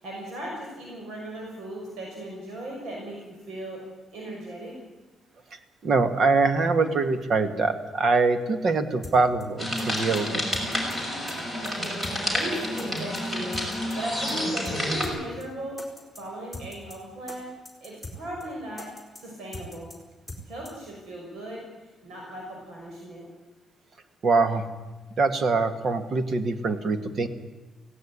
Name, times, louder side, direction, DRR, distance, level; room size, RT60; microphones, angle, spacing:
voice 1, 0.0-3.8 4.1-4.8 12.3-13.6 13.9-15.8 16.1-17.5 17.8-18.9 19.2-19.9 20.4-21.6 22.0-23.2, right 1 dB, 80° right, -1 dB, 6.0 m, -37 dB
voice 2, 5.8-10.4 24.2-24.6 25.2-27.3, right 3 dB, 45° right, 9 dB, 1.8 m, -23 dB
sound 1, 9.0-9.2 9.4-9.5 9.8-10.2 10.5-11.0 11.3-11.4 11.7-12.2 12.4-12.5 12.8-13.2 13.5-14.0 14.3-14.4 14.7-14.8 15.0-15.2 15.4-15.5 15.8-16.2 16.5-17.0 17.3-17.4 17.7-18.2 18.4-18.5 18.8-19.2 19.5-20.0 20.3-20.4 20.7-20.8, left 2 dB, ahead, 4.3 m, -40 dB
sound 2, 9.6-15.1, equal, 20° right, 5.9 m, -29 dB
17.5 x 17.0 x 9.8 m, 1.2 s
cardioid pair, 130°, 0 cm